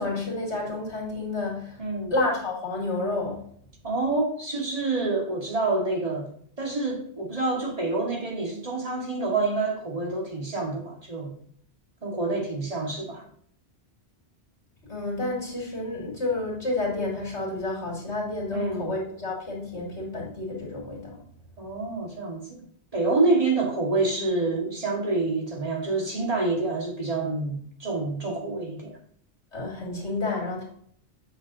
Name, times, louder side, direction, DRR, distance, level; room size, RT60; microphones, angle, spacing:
voice 1, 0.0-1.8 2.1-3.4 14.9-21.2 29.5-30.6, left 2 dB, 85° left, -2 dB, 3.1 m, -30 dB
voice 2, 1.8-2.1 3.8-6.3 6.6-11.3 12.0-13.3 18.5-18.9 21.6-22.6 22.9-29.0, right 3 dB, 35° right, -1 dB, 2.0 m, -27 dB
8.3 x 6.7 x 2.8 m, 0.63 s
omnidirectional pair, 1.1 m